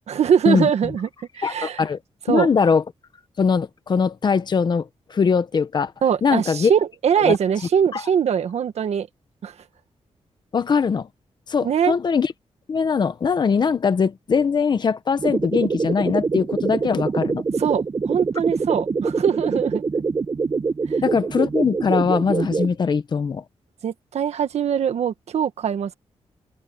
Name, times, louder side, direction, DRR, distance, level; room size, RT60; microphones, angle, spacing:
voice 1, 0.1-1.1 1.3-1.8 2.3-2.5 6.0-9.1 9.4-9.5 11.6-11.9 17.6-19.8 20.9-21.0 23.8-25.9, right 8 dB, 75° right, 1.5 m, -22 dB
voice 2, 1.4-2.0 2.3-2.8 3.4-5.9 6.2-6.7 7.2-7.4 7.9-8.0 10.5-11.1 11.5-12.3 12.7-17.4 21.0-23.4, left 5 dB, 40° left, 1.0 m, -21 dB
sound 1, 15.2-22.7, right 4 dB, 30° right, 1.1 m, -24 dB
open air
wide cardioid pair, 170°, 11 cm